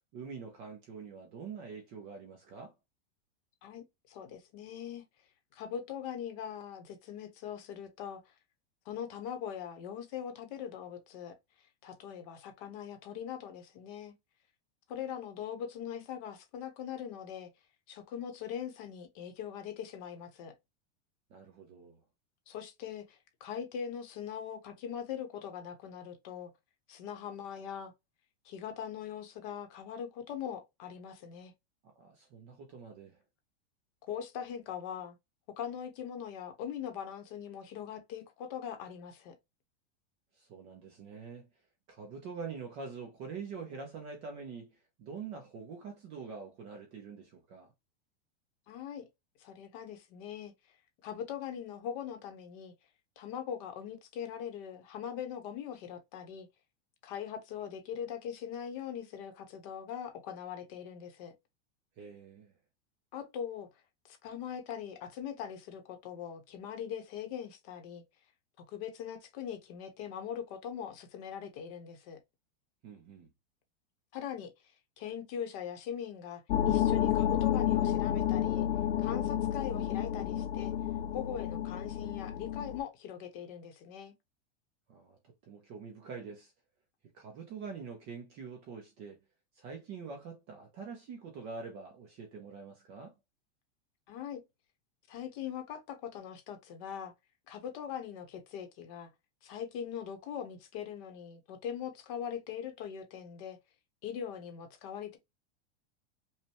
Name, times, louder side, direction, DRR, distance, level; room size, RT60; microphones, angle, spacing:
voice 1, 0.1-2.7 21.3-22.0 31.8-33.2 40.3-41.5 41.9-47.7 62.0-62.5 72.8-73.3 84.9-85.2 85.4-86.5 87.1-89.2 89.6-93.1, right 5 dB, 20° right, 0.4 m, -45 dB
voice 2, 3.6-5.0 5.5-8.3 8.8-11.3 11.8-14.1 14.9-17.5 17.9-20.5 22.5-26.5 26.9-27.9 28.4-31.5 34.1-35.2 35.6-39.3 48.7-49.0 49.4-50.5 51.0-52.7 53.2-56.5 57.0-61.3 63.1-63.7 64.1-68.0 68.7-72.2 74.1-74.5 75.0-78.7 79.0-80.7 81.1-84.1 94.1-94.4 95.1-97.1 97.5-99.1 99.4-103.6 104.0-105.2, left 8 dB, 35° left, 0.8 m, -41 dB
sound 1, 76.5-82.8, left 11 dB, 85° left, 0.6 m, -30 dB
5.4 x 2.2 x 2.8 m
supercardioid pair, 175°, 33 cm